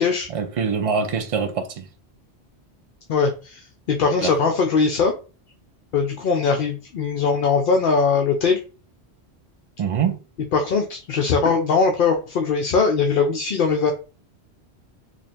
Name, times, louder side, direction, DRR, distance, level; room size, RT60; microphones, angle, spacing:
voice 1, 0.3-1.9 4.2-4.3 9.8-10.2, right 6 dB, 70° right, 0.3 m, -24 dB
voice 2, 3.1-5.1 5.9-8.6 10.5-13.9, left 5 dB, 60° left, 0.7 m, -20 dB
3.1 x 2.5 x 4.2 m
omnidirectional pair, 1.1 m